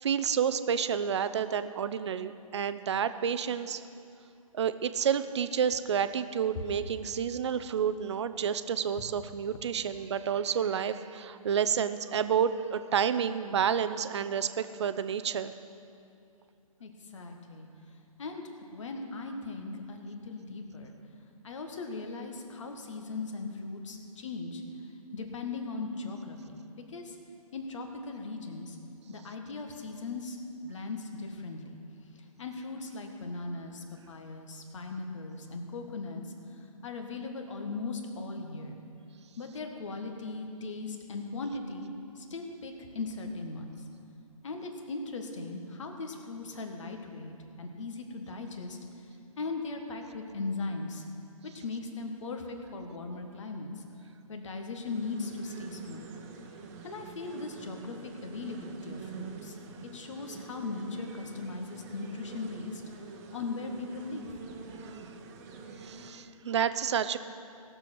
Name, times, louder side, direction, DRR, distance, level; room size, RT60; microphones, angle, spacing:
voice 1, 0.0-3.8 4.5-15.5 64.9-65.0 65.8-67.2, right 8 dB, 50° right, 12 dB, 0.6 m, -30 dB
voice 2, 16.8-17.7 18.2-18.4 18.7-20.9 21.4-24.6 25.1-26.6 26.9-27.2 27.5-28.8 29.1-30.4 30.6-31.8 32.1-36.2 36.8-38.8 39.4-41.9 42.1-43.7 44.4-48.8 49.4-51.0 51.4-53.7 54.3-56.1 56.8-59.6 59.9-62.8 63.3-64.3, left 3 dB, 55° left, 4 dB, 1.6 m, -38 dB
sound 1, 54.8-66.1, right 5 dB, 25° right, 1.0 m, -46 dB
17.5 x 6.9 x 6.1 m, 2.6 s
figure-of-eight pair, 140°, 19 cm